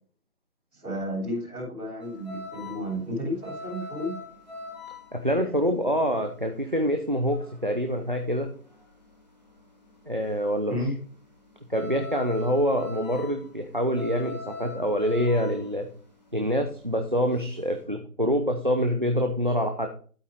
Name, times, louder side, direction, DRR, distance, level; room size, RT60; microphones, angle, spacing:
voice 1, 0.7-4.1 10.7-10.9, equal, ahead, -27 dB, 2.2 m, -32 dB
sound 1, 2.0-9.1 9.4-17.8, left 3 dB, 30° left, 1.8 m, -42 dB
voice 2, 5.1-8.5 10.1-10.8 11.7-15.9 16.3-19.9, equal, 35° right, 5 dB, 0.9 m, -26 dB
13.0 x 4.7 x 5.4 m, 0.42 s
figure-of-eight pair, 180°, 45 cm